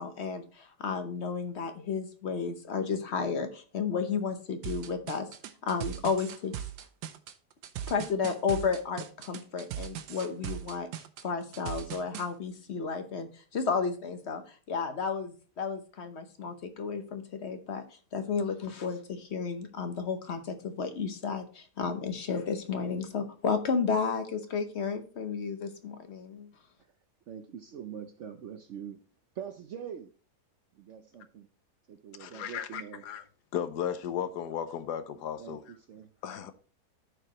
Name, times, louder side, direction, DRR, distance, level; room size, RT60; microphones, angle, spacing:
voice 1, 0.0-5.3 5.6-6.5 7.9-10.9 11.2-14.4 14.7-17.8 18.1-26.5, left 5 dB, 50° left, 1.0 m, -32 dB
sound 1, 4.6-12.3, right 10 dB, 85° right, 1.3 m, -39 dB
voice 2, 27.3-29.0 29.3-30.1 30.7-31.5 31.9-33.0 35.4-36.1, right 8 dB, 65° right, 0.7 m, -43 dB
voice 3, 32.2-33.2 33.5-35.6 36.2-36.5, left 9 dB, 80° left, 1.3 m, -35 dB
13.5 x 4.7 x 2.9 m
omnidirectional pair, 1.8 m